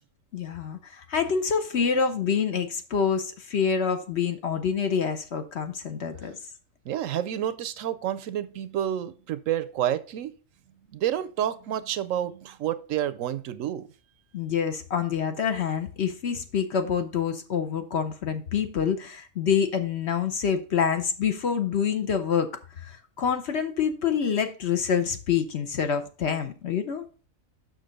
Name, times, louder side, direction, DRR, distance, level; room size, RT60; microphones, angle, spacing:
voice 1, 0.3-6.4 14.3-22.5 22.8-27.1, left 7 dB, 55° left, 1.0 m, -27 dB
voice 2, 6.9-10.3 10.9-13.9, right 11 dB, 70° right, 0.9 m, -29 dB
6.5 x 6.0 x 5.1 m
omnidirectional pair, 1.4 m